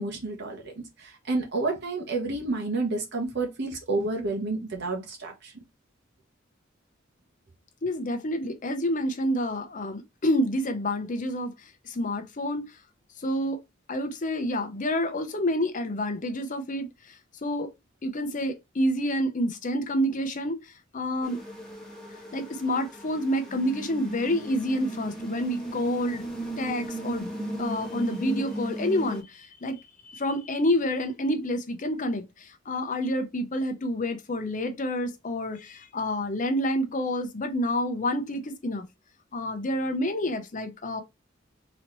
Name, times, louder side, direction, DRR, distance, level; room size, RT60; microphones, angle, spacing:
voice 1, 0.0-5.5, right 3 dB, 60° right, 0.9 m, -30 dB
voice 2, 7.8-11.5 11.8-12.7 13.2-13.6 13.9-16.9 17.4-17.7 18.0-20.6 20.9-21.4 22.3-26.2 26.6-27.3 27.6-38.8 39.3-41.0, left 1 dB, 40° left, 0.8 m, -28 dB
sound 1, 21.2-29.2, right 1 dB, 5° left, 1.3 m, -36 dB
4.0 x 3.0 x 3.1 m
head